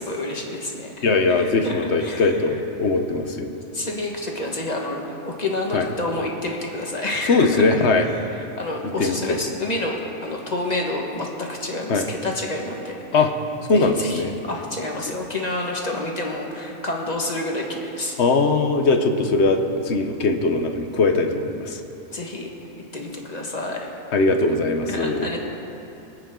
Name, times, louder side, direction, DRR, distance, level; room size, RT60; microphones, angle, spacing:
voice 1, 0.0-2.3 3.7-7.7 8.6-12.9 13.7-18.1 22.1-22.5 22.8-23.9 24.9-25.4, left 2 dB, 30° left, 0 dB, 1.6 m, -29 dB
voice 2, 1.0-3.5 5.7-5.9 7.2-8.1 9.0-9.5 11.9-12.1 13.1-13.3 13.7-14.3 15.0-15.1 18.2-21.8 24.1-25.3, left 3 dB, 55° left, 6 dB, 1.1 m, -20 dB
24.5 x 8.8 x 3.8 m, 2.8 s
omnidirectional pair, 1.5 m